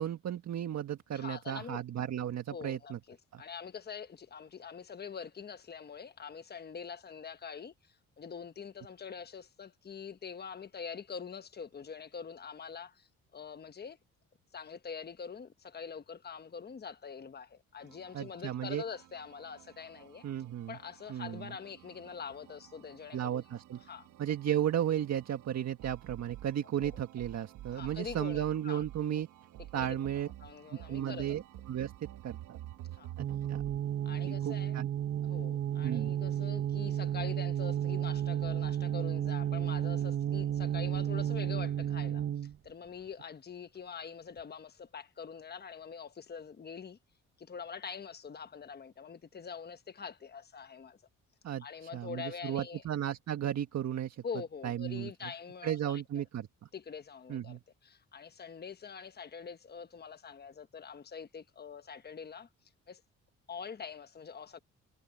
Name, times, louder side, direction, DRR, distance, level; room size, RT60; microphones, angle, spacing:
voice 1, 0.0-3.0 3.3-3.4 18.1-18.8 20.2-20.8 21.1-21.5 23.1-23.8 24.2-29.3 29.7-30.3 30.7-31.4 31.7-31.9 32.2-32.6 33.2-33.6 34.3-34.9 35.8-36.1 51.4-54.2 54.6-55.1 55.6-56.5 57.3-57.6, right 10 dB, 60° right, 1.7 m, -34 dB
voice 2, 1.1-1.8 2.5-13.1 13.3-14.0 14.5-20.2 20.7-23.4 23.8-24.1 26.8-27.0 27.7-28.8 29.7-31.4 33.0-33.1 34.0-34.8 35.2-42.2 42.6-47.0 47.4-51.0 51.6-52.8 54.2-56.0 56.7-62.5 62.9-63.0 63.5-64.6, left 6 dB, 35° left, 1.2 m, -44 dB
sound 1, 17.8-33.8, right 14 dB, 85° right, 1.2 m, -51 dB
sound 2, 33.2-42.6, right 10 dB, 45° right, 1.0 m, -32 dB
cardioid pair, 90°, 30 cm